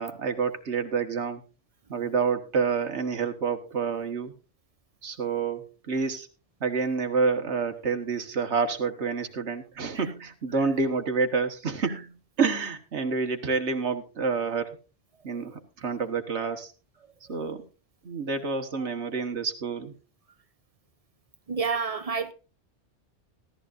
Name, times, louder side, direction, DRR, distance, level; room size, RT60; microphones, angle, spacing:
voice 1, 0.0-1.4 1.9-4.3 5.0-6.3 6.6-12.1 12.4-14.8 15.2-16.7 17.3-17.6 18.0-19.9, right 5 dB, 70° right, 1.7 m, -28 dB
voice 2, 21.5-22.3, right 5 dB, 35° right, 0.7 m, -30 dB
15.0 x 14.0 x 2.5 m
omnidirectional pair, 1.2 m